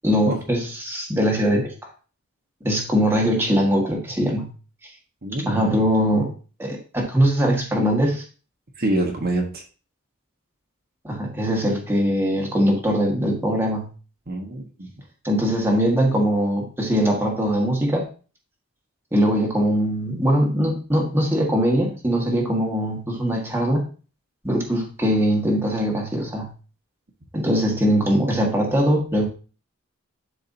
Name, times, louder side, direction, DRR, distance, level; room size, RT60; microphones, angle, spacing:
voice 1, 0.0-1.7 2.6-4.5 5.5-6.3 6.6-8.2 11.0-13.9 15.2-18.1 19.1-23.8 24.4-26.5 27.3-29.3, equal, 10° right, -1 dB, 1.6 m, -21 dB
voice 2, 5.2-5.8 8.8-9.6 14.3-14.9, right 1 dB, 45° right, 1 dB, 1.2 m, -26 dB
11.0 x 4.7 x 2.7 m, 0.36 s
head